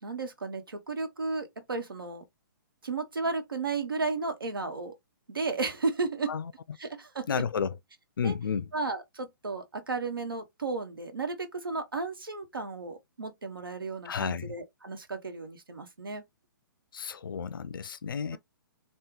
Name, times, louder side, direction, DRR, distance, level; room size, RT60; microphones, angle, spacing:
voice 1, 0.0-2.2 2.8-4.9 5.3-6.3 6.8-7.4 8.2-8.4 8.7-16.2, right 3 dB, 85° right, 1.3 m, -34 dB
voice 2, 7.3-7.7 8.2-8.7 14.0-14.5 16.9-18.4, left 6 dB, 75° left, 0.4 m, -31 dB
3.5 x 2.4 x 2.9 m
hypercardioid pair, 130°, 11 cm